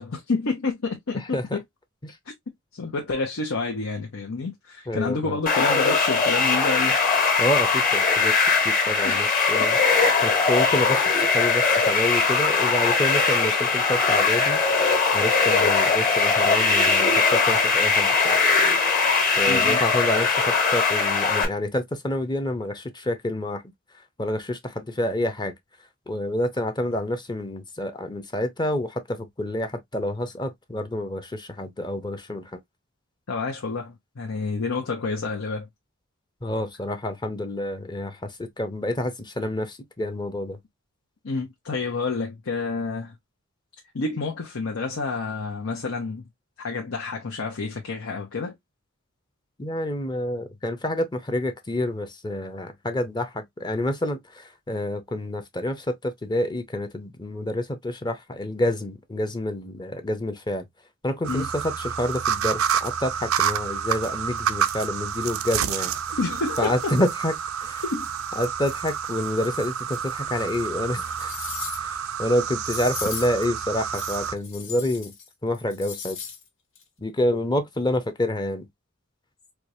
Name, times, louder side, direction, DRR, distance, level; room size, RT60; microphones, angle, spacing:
voice 1, 0.0-1.6 2.7-7.0 9.0-9.8 19.5-19.8 33.3-35.7 41.2-43.1 43.9-46.2 46.6-48.6 61.3-61.5 66.2-66.9 67.8-68.1, left 3 dB, 80° left, 0.8 m, -29 dB
voice 2, 4.9-5.4 7.4-9.8 10.2-14.6 15.1-18.5 19.4-23.6 24.2-25.5 26.1-32.6 36.4-40.6 49.6-60.7 61.0-65.9 66.6-67.3 67.6-67.8 68.4-71.3 71.8-75.1 75.4-76.2 77.0-78.7, left 1 dB, 20° left, 0.7 m, -28 dB
sound 1, 5.5-21.5, left 4 dB, 40° left, 1.4 m, -20 dB
sound 2, 61.2-74.4, right 8 dB, 85° right, 0.5 m, -29 dB
sound 3, 70.4-70.5 71.0-72.0 72.6-73.4 73.9-75.3 75.5-76.4 76.7-76.8, left 6 dB, 65° left, 1.2 m, -37 dB
4.5 x 2.3 x 2.6 m
head